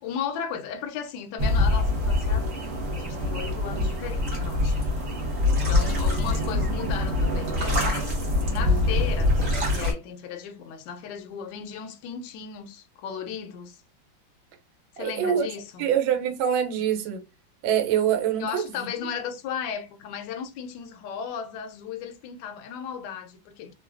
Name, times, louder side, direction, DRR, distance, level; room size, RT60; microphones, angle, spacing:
voice 1, 0.0-4.8 5.7-13.8 14.9-15.8 18.4-23.7, left 7 dB, 75° left, 1.2 m, -36 dB
sound 1, 1.4-9.9, left 2 dB, 50° right, 1.3 m, -24 dB
voice 2, 15.0-15.5 15.8-17.2 17.6-18.9, right 9 dB, 90° right, 1.4 m, -25 dB
3.1 x 2.2 x 2.4 m
omnidirectional pair, 2.1 m